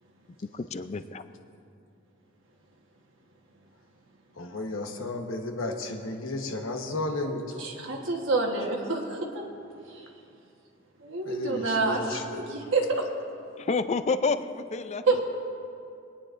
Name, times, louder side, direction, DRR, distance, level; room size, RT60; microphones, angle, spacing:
voice 1, 0.5-1.2 13.6-15.0, left 4 dB, 35° left, 11 dB, 0.4 m, -29 dB
voice 2, 4.4-7.7 11.2-12.4 15.2-15.3, left 2 dB, 90° left, 4 dB, 1.1 m, -33 dB
voice 3, 7.6-9.4 9.9-10.0 11.0-13.0 15.1-15.2, right 3 dB, 70° right, 0 dB, 1.3 m, -28 dB
22.5 x 9.8 x 2.5 m, 2.6 s
head